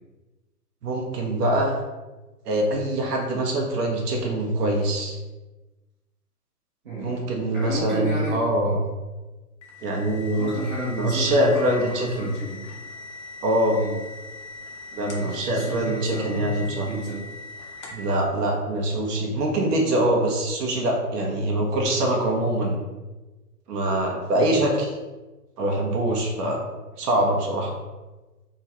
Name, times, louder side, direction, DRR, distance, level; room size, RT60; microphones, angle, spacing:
voice 1, 0.8-1.7 2.4-5.2 7.0-8.8 9.8-10.5 10.9-12.3 13.4-13.8 14.9-16.9 17.9-22.8 23.7-24.9 25.6-26.6 27.0-27.7, right 1 dB, 75° right, 0 dB, 0.9 m, -24 dB
voice 2, 6.8-8.5 10.3-12.6 13.7-14.0 15.1-17.2 24.3-24.7, right 1 dB, 35° right, -8 dB, 0.8 m, -32 dB
sound 1, 9.6-18.1, left 3 dB, 45° left, 0.6 m, -41 dB
3.0 x 2.3 x 2.8 m, 1.1 s
hypercardioid pair, 160°, 47 cm